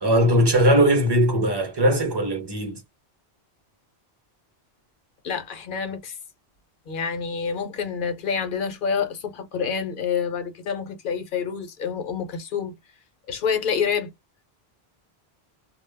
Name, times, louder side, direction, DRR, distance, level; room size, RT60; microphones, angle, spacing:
voice 1, 0.0-2.8, equal, 25° right, 0.7 m, -19 dB
voice 2, 5.2-6.2 6.9-12.7 13.3-14.1, left 6 dB, 60° left, 0.7 m, -27 dB
2.2 x 2.0 x 3.2 m
omnidirectional pair, 1.1 m